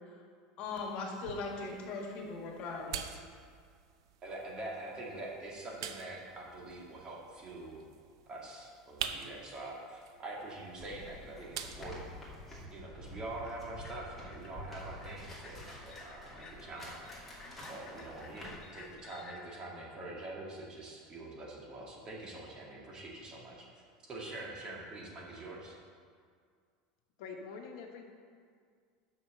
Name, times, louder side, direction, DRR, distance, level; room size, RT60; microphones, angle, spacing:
voice 1, 0.6-3.2, left 3 dB, 50° left, 0 dB, 1.9 m, -39 dB
Handing over a bottle of wine, 0.7-12.7, right 8 dB, 85° right, 0.6 m, -47 dB
voice 2, 4.2-7.9 8.3-12.1 12.7-17.1 17.7-23.6 24.1-25.7, right 2 dB, 30° right, -3 dB, 2.1 m, -45 dB
sound 1, 10.8-18.9, equal, 5° left, 2.5 m, -49 dB
sound 2, 13.0-19.5, left 3 dB, 30° left, 1.3 m, -54 dB
voice 3, 27.2-28.1, left 5 dB, 70° left, 2 dB, 1.1 m, -45 dB
7.1 x 6.1 x 6.5 m, 2.1 s
supercardioid pair, 115°, 2 cm